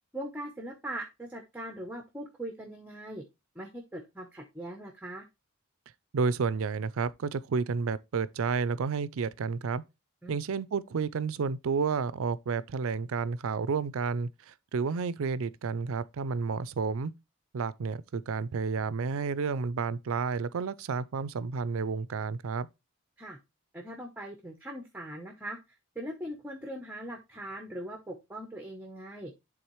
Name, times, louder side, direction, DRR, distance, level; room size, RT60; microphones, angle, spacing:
voice 1, 0.1-3.2 3.5-5.2 10.2-10.4 23.2-23.4 23.7-25.6 25.9-29.3, right 1 dB, 5° right, 0.8 m, -40 dB
voice 2, 6.1-9.8 10.3-17.1 17.5-22.7, right 5 dB, 75° right, 0.4 m, -31 dB
11.0 x 3.7 x 3.1 m
head